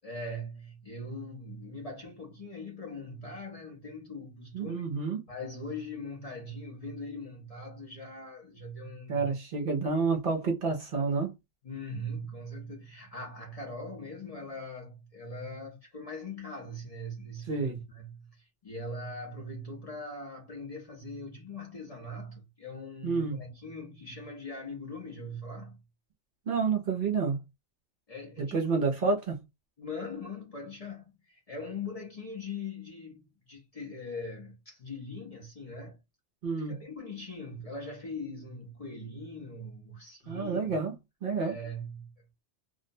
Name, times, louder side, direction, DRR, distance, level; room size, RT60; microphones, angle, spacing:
voice 1, 0.0-4.8 5.3-9.3 11.6-25.8 28.1-28.8 29.8-36.0 36.6-40.8 41.4-42.1, left 2 dB, 35° left, 0.7 m, -41 dB
voice 2, 4.5-5.2 9.1-11.3 17.5-17.8 23.0-23.4 26.5-27.4 28.4-29.4 36.4-36.8 40.3-41.0 41.2-41.6, right 4 dB, 55° right, 0.7 m, -29 dB
2.6 x 2.1 x 2.6 m
omnidirectional pair, 1.2 m